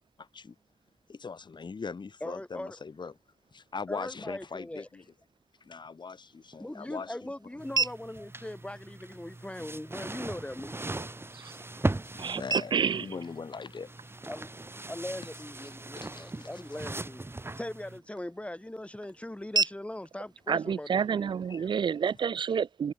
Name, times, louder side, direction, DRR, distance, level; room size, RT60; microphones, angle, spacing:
voice 1, 0.2-0.5 1.1-3.1 3.5-5.0 5.6-7.3 12.1-13.9 16.0-16.5 21.5-21.7, left 5 dB, 70° left, 2.6 m, -41 dB
voice 2, 2.2-2.8 3.9-4.9 6.6-10.9 14.3-14.5 14.9-17.2 17.6-21.3, left 1 dB, 15° left, 7.1 m, -40 dB
sound 1, 6.0-22.0, right 4 dB, 60° right, 3.2 m, -39 dB
sound 2, 7.6-18.0, right 2 dB, 30° right, 7.0 m, -39 dB
voice 3, 12.7-13.1 20.5-22.9, right 7 dB, 75° right, 0.4 m, -29 dB
wide cardioid pair, 65°, 8 cm